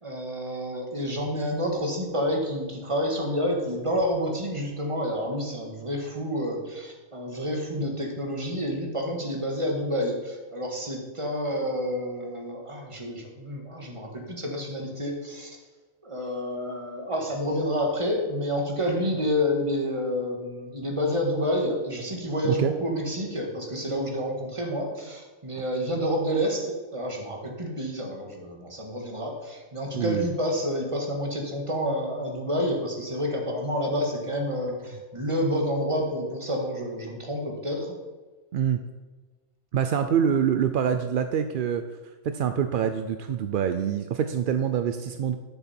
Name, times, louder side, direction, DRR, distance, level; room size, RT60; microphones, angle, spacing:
voice 1, 0.0-15.6 16.0-38.0, equal, 25° right, 1 dB, 1.7 m, -29 dB
voice 2, 30.0-30.3 38.5-38.8 39.7-41.8 42.2-45.4, right 8 dB, 65° right, 8 dB, 0.5 m, -25 dB
11.5 x 6.9 x 4.3 m, 1.3 s
omnidirectional pair, 1.3 m